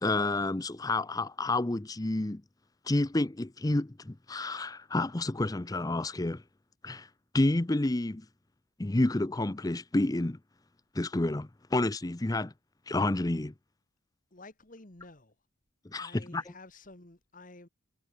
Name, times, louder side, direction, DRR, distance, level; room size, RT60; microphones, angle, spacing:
voice 1, 0.0-2.4 2.9-6.4 6.8-7.1 7.3-8.2 8.8-10.4 10.9-12.5 12.9-13.5 15.8-16.4, left 2 dB, 20° left, 0.6 m, -29 dB
voice 2, 14.3-15.4 16.0-17.7, left 2 dB, 40° left, 2.0 m, -51 dB
head